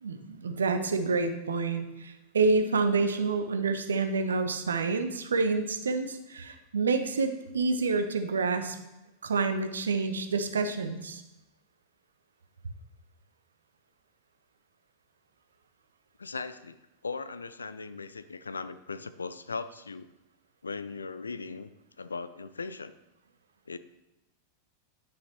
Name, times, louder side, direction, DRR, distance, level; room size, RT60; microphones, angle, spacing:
voice 1, 0.0-8.8 9.2-11.2, right 4 dB, 70° right, 8 dB, 0.6 m, -28 dB
voice 2, 16.2-20.1 20.6-21.7 22.0-22.9 23.7-23.8, left 4 dB, 75° left, 13 dB, 0.4 m, -38 dB
9.6 x 6.2 x 3.0 m, 0.96 s
figure-of-eight pair, 90°, 0 cm